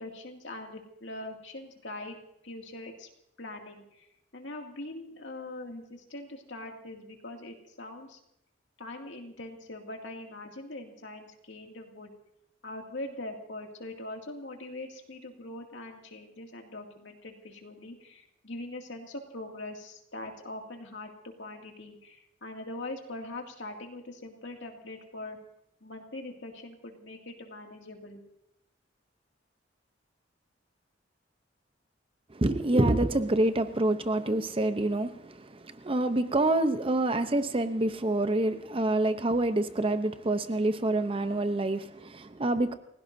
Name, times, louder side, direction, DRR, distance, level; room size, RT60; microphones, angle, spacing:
voice 1, 0.0-3.1 3.4-4.1 4.3-8.2 8.8-12.1 12.6-25.4 25.8-28.2, left 2 dB, 70° left, 2 dB, 2.4 m, -42 dB
voice 2, 32.3-42.8, right 2 dB, 30° right, 10 dB, 0.7 m, -27 dB
29.5 x 17.0 x 2.7 m, 0.80 s
head